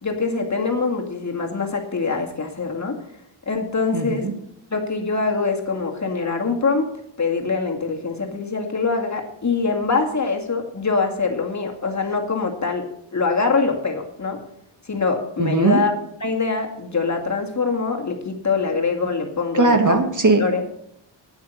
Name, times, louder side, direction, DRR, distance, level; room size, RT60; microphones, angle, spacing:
voice 1, 0.0-3.0 3.5-4.3 4.7-6.9 7.2-12.9 13.1-14.4 14.8-15.9 16.2-20.0 20.4-20.6, left 4 dB, 35° left, 2 dB, 2.2 m, -24 dB
voice 2, 3.9-4.3 15.4-15.8 19.5-20.4, right 3 dB, 40° right, 6 dB, 1.5 m, -18 dB
9.5 x 9.4 x 7.0 m, 0.73 s
wide cardioid pair, 95°, 48 cm